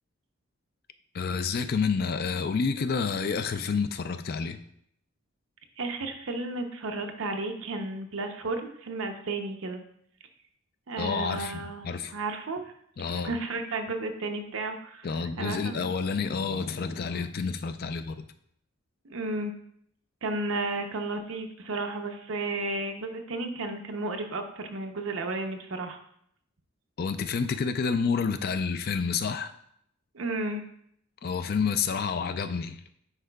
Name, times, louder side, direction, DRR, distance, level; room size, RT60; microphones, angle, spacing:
voice 1, 1.1-4.6 11.0-12.1 13.0-13.3 15.0-18.3 27.0-29.5 31.2-32.9, left 5 dB, 45° left, 10 dB, 0.3 m, -29 dB
voice 2, 5.8-9.8 10.9-12.7 13.0-15.8 19.0-19.5 20.2-26.0 30.1-30.6, right 2 dB, 70° right, 5 dB, 0.7 m, -33 dB
9.8 x 4.7 x 2.3 m, 0.70 s
head